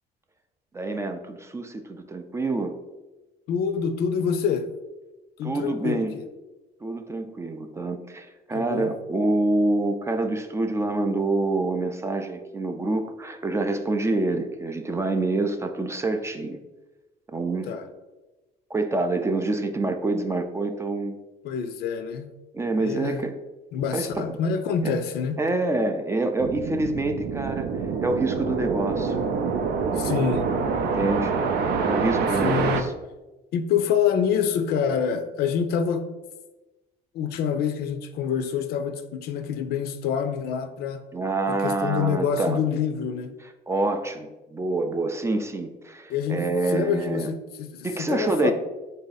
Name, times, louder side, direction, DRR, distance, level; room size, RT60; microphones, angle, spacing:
voice 1, 0.7-2.7 5.4-6.1 6.8-16.6 17.3-17.7 18.7-21.2 22.5-23.3 23.9-24.3 24.8-24.9 25.4-29.2 30.8-31.3 31.8-32.9 41.1-42.6 43.7-47.3 47.8-48.5, right 2 dB, 15° right, 6 dB, 0.3 m, -26 dB
voice 2, 3.5-4.7 5.4-6.3 8.5-8.9 17.7-17.9 21.4-22.3 22.7-23.2 23.7-25.4 29.9-30.5 32.4-32.9 33.5-36.0 37.1-41.0 41.5-43.3 46.1-48.5, left 7 dB, 70° left, 9 dB, 0.5 m, -26 dB
sound 1, 26.4-32.8, right 5 dB, 75° right, 0.5 m, -26 dB
3.9 x 2.7 x 3.9 m, 1.1 s
cardioid pair, 110°, 17 cm